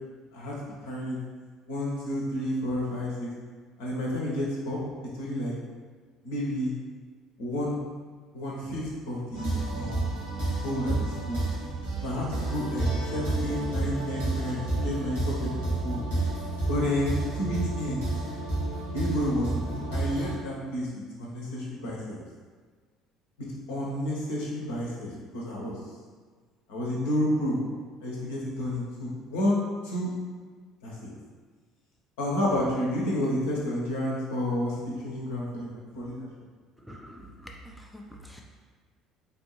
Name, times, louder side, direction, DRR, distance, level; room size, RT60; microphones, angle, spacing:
voice 1, 0.8-1.2 1.7-3.3 3.8-4.8 5.1-5.5 6.2-6.7 7.4-7.8 8.3-10.1 10.5-11.4 12.0-16.0 16.7-18.0 18.9-20.9 21.2-22.2 23.7-25.8 26.7-27.6 28.0-30.1 30.8-31.1 32.2-36.3, left 1 dB, 70° left, -5 dB, 0.8 m, -30 dB
sound 1, 9.3-20.3, right 2 dB, 75° right, 1.3 m, -30 dB
voice 2, 36.8-38.4, equal, ahead, -1 dB, 0.4 m, -46 dB
3.4 x 2.6 x 3.0 m, 1.5 s
figure-of-eight pair, 55°, 0 cm